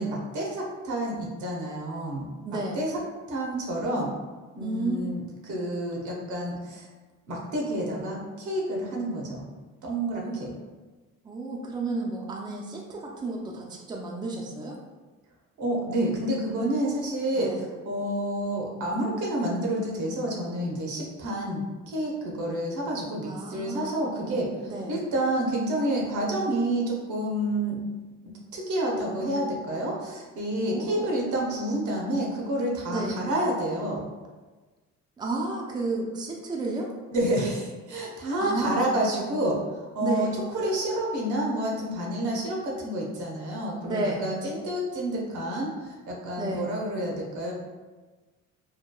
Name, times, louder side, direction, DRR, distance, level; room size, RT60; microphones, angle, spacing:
voice 1, 0.0-2.3 2.7-2.9 3.3-4.1 4.5-6.9 7.3-9.5 9.8-10.5 15.6-17.5 17.8-21.6 21.9-24.5 24.9-27.8 28.5-34.0 37.1-39.6 39.9-40.3 40.5-47.5, right 1 dB, 75° right, -2 dB, 0.8 m, -29 dB
voice 2, 2.4-2.9 4.6-5.0 10.1-10.4 11.2-14.8 17.3-17.6 23.2-24.0 24.7-24.9 30.6-31.1 32.9-33.2 35.2-36.9 38.4-38.9 40.0-40.4 43.8-44.3 46.4-46.7, right 2 dB, 15° right, -1 dB, 0.4 m, -32 dB
3.0 x 2.2 x 2.2 m, 1.3 s
cardioid pair, 90°, 30 cm